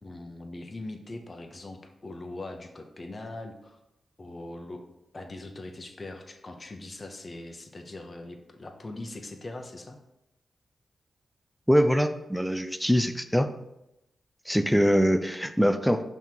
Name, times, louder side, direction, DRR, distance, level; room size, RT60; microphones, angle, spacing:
voice 1, 0.0-3.8 4.2-4.8 5.1-10.0, left 2 dB, 35° left, 4 dB, 0.8 m, -41 dB
voice 2, 11.7-13.5 14.5-16.0, equal, ahead, 9 dB, 0.4 m, -23 dB
5.7 x 3.6 x 4.6 m, 0.88 s
cardioid pair, 70°, 0 cm